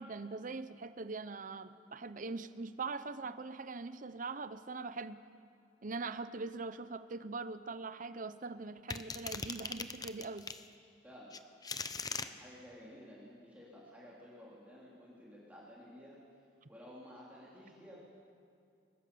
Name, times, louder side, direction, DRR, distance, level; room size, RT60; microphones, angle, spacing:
voice 1, 0.0-5.2 5.8-10.5, right 3 dB, 50° right, 12 dB, 0.7 m, -42 dB
sound 1, 8.9-10.6 11.3-12.3, left 4 dB, 20° left, 0.8 m, -40 dB
voice 2, 11.0-11.4 12.0-16.2 16.7-18.0, equal, 10° right, -7 dB, 3.4 m, -53 dB
22.5 x 20.0 x 7.0 m, 2.4 s
head